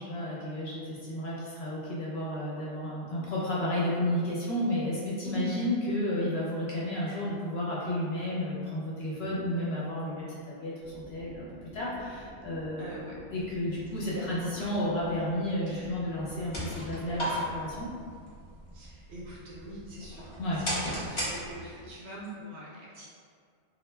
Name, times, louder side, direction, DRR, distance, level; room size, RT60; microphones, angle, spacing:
voice 1, 0.0-12.9 13.3-17.9 20.4-20.6, left 1 dB, 60° left, -7 dB, 0.8 m, -32 dB
sound 1, 10.8-17.7, equal, ahead, 0.7 m, -49 dB
voice 2, 12.8-13.2 14.1-14.5 15.7-16.0 18.7-20.3 20.6-23.1, equal, 65° right, -6 dB, 0.9 m, -43 dB
sound 2, 16.2-21.9, equal, 40° left, 0.4 m, -37 dB
2.3 x 2.1 x 3.2 m, 2.1 s
omnidirectional pair, 1.3 m